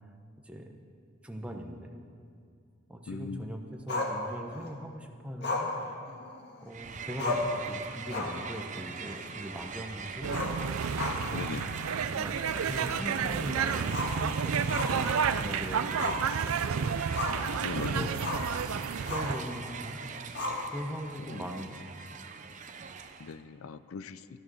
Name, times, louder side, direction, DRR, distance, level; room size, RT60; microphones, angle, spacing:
voice 1, 1.2-2.0 2.9-5.7 6.6-10.3 11.1-11.9 12.1-16.5 17.7-18.3 18.7-20.0 20.7-22.1, equal, 5° right, 2 dB, 1.0 m, -40 dB
voice 2, 3.1-3.4 10.3-10.6 11.3-11.7 17.6-18.1 21.3-21.4 23.2-24.2, left 5 dB, 85° left, 14 dB, 0.5 m, -39 dB
Growling, 3.9-4.7 5.4-6.7 6.9-7.0 7.2-7.6 8.0-8.5 8.8-8.9 10.2-11.5 11.8-11.9 12.5-12.6 13.9-15.5 16.0-16.3 16.6-17.5 18.2-18.5 19.1-19.4 20.4-21.0, left 2 dB, 50° left, 1.8 m, -34 dB
Crowd, 6.7-23.4, right 5 dB, 35° right, 0.7 m, -42 dB
sound 1, 10.2-19.4, right 6 dB, 85° right, 0.5 m, -31 dB
13.5 x 11.5 x 6.4 m, 2.3 s
head